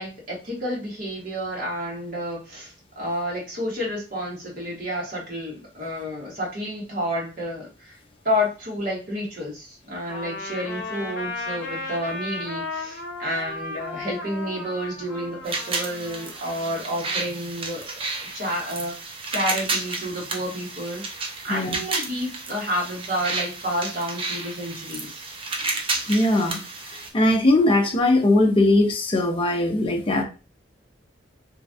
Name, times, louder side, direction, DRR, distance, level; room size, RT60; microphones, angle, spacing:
voice 1, 0.0-8.0 8.2-17.8 18.2-18.9 19.3-25.2, equal, 50° right, -4 dB, 1.5 m, -30 dB
Trumpet, 10.1-17.2, left 2 dB, 65° left, 0.8 m, -35 dB
sound 1, 15.4-27.1, right 3 dB, 30° right, 0.5 m, -31 dB
voice 2, 26.1-26.6 26.9-30.2, left 2 dB, 30° left, 1 dB, 0.5 m, -20 dB
3.1 x 2.4 x 2.6 m, 0.32 s
head